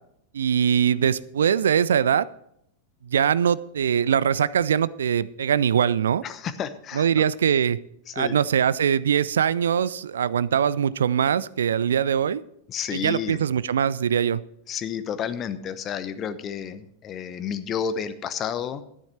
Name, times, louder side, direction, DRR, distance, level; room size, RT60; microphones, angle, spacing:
voice 1, 0.3-2.3 3.0-6.2 6.9-7.8 8.1-12.4 12.9-14.4, right 8 dB, 65° right, 19 dB, 0.4 m, -22 dB
voice 2, 6.2-7.3 8.1-8.3 12.7-13.4 14.7-18.8, left 8 dB, 30° left, 13 dB, 0.9 m, -31 dB
12.0 x 10.0 x 4.4 m, 0.75 s
figure-of-eight pair, 90°, 0 cm